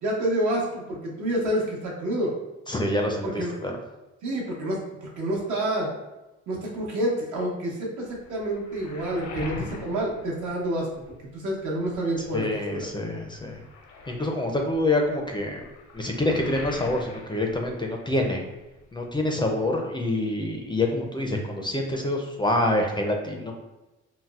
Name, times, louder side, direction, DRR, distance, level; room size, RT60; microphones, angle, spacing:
voice 1, 0.0-2.3 3.2-3.5 4.2-5.9 6.5-10.9 11.3-12.9, right 1 dB, 75° right, -2 dB, 1.0 m, -28 dB
voice 2, 2.7-3.7 12.3-13.6 14.1-15.6 15.9-18.4 18.9-23.5, left 1 dB, 15° left, 2 dB, 0.4 m, -26 dB
Waves surf, 8.0-11.2 11.6-18.5 18.8-19.7, left 3 dB, 75° left, 0.6 m, -44 dB
4.0 x 2.0 x 2.3 m, 1.0 s
cardioid pair, 90°, 30 cm